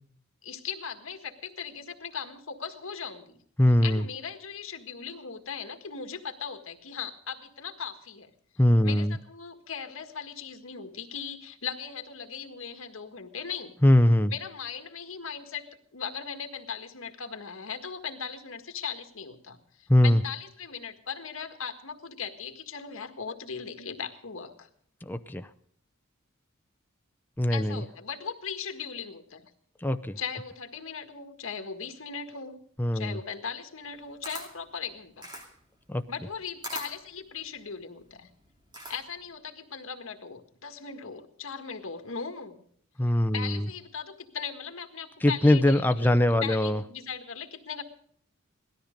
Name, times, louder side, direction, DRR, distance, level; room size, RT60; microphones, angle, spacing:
voice 1, 0.4-3.4 3.8-8.3 8.8-13.7 14.3-15.6 15.9-24.7 27.5-29.5 30.2-32.6 32.9-35.3 36.1-38.3 38.9-42.6 43.3-46.1 46.4-47.8, left 6 dB, 80° left, 6 dB, 1.7 m, -38 dB
voice 2, 3.6-4.0 8.6-9.2 13.8-14.3 19.9-20.2 25.1-25.5 27.4-27.8 29.8-30.1 32.8-33.2 35.9-36.0 43.0-43.6 45.2-46.8, left 1 dB, 10° left, 8 dB, 0.6 m, -22 dB
Camera, 33.8-39.3, right 1 dB, 20° right, 2.5 m, -43 dB
18.0 x 13.0 x 5.2 m, 0.62 s
head